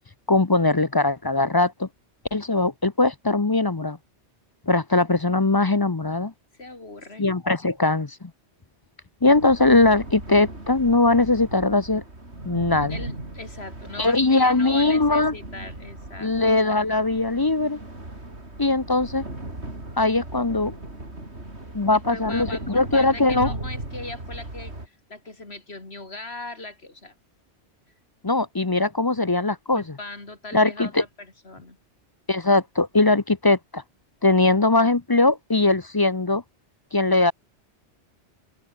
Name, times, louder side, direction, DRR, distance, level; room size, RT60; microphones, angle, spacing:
voice 1, 0.3-1.9 2.3-4.0 4.7-6.3 7.2-8.3 9.2-12.0 12.4-13.0 14.0-15.3 16.2-17.8 18.6-19.2 20.0-20.8 21.7-23.5 28.2-29.8 30.5-31.0 32.3-33.8 34.2-36.4 36.9-37.3, left 2 dB, 25° left, 0.7 m, -20 dB
voice 2, 6.6-7.3 12.8-16.3 22.1-27.1 29.7-31.8, left 2 dB, 60° left, 3.9 m, -39 dB
sound 1, 9.3-24.9, right 2 dB, 70° right, 5.7 m, -38 dB
omnidirectional pair, 1.2 m